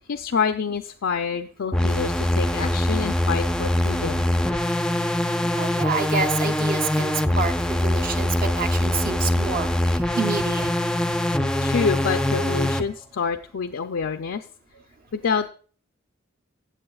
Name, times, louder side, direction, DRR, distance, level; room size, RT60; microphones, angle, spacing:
voice 1, 0.1-4.3 11.6-14.4 15.1-15.5, left 6 dB, 75° left, 5 dB, 0.5 m, -27 dB
sound 1, 1.7-12.8, left 1 dB, 5° left, 0.4 m, -23 dB
voice 2, 5.4-9.7 10.2-10.7, right 5 dB, 45° right, 5 dB, 0.7 m, -28 dB
15.5 x 7.8 x 2.3 m, 0.42 s
head